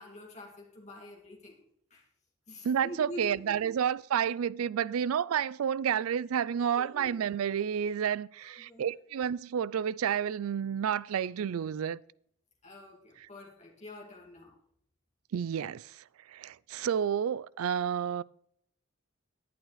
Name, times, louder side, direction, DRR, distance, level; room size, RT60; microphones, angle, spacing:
voice 1, 0.0-1.6 1.9-2.1 2.5-3.5 6.5-7.2 8.4-9.0 12.6-14.5, left 1 dB, 30° left, 2.1 m, -46 dB
voice 2, 2.6-12.0 15.3-18.2, right 8 dB, 90° right, 0.4 m, -30 dB
10.5 x 9.0 x 4.8 m
head